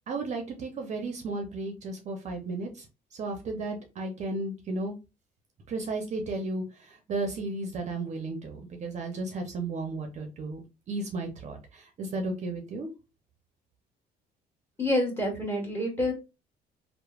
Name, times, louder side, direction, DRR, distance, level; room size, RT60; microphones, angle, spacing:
voice 1, 0.1-2.9 3.1-4.9 5.7-10.6 10.9-12.9, right 2 dB, 45° right, 4 dB, 0.6 m, -34 dB
voice 2, 14.8-16.1, left 1 dB, 15° left, 0 dB, 1.4 m, -27 dB
3.1 x 2.0 x 2.3 m, 0.28 s
cardioid pair, 110°, 17 cm